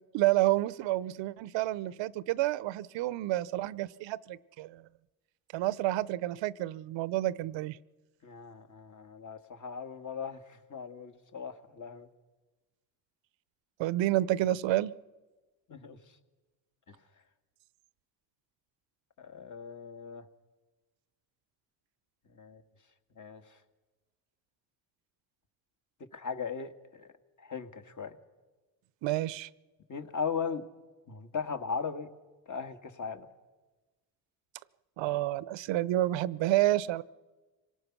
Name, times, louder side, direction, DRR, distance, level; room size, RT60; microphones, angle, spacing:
voice 1, 0.1-4.8 5.5-7.8 13.8-14.9 29.0-29.5 35.0-37.0, right 15 dB, 70° right, 19 dB, 0.8 m, -29 dB
voice 2, 8.2-12.1 15.7-16.0 19.2-20.3 22.3-22.6 23.2-23.6 26.1-27.1 27.4-28.2 29.9-30.6 31.1-32.1 32.5-33.3, left 6 dB, 40° left, 8 dB, 2.0 m, -38 dB
25.5 x 18.0 x 6.1 m, 1.2 s
supercardioid pair, 80°, 46 cm